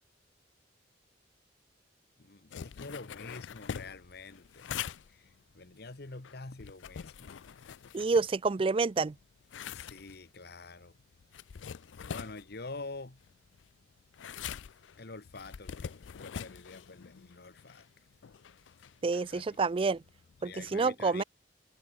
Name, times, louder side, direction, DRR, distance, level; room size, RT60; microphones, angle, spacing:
voice 1, 2.2-4.8 5.1-5.3 5.5-7.3 9.7-11.0 12.0-13.2 15.0-17.9 19.3-19.6 20.4-21.2, left 3 dB, 60° left, 1.3 m, -46 dB
sound 1, 2.5-8.7 9.1-20.7, left 7 dB, 85° left, 0.4 m, -45 dB
voice 2, 7.9-9.1 19.0-20.0 20.4-21.2, right 4 dB, 30° right, 0.4 m, -28 dB
head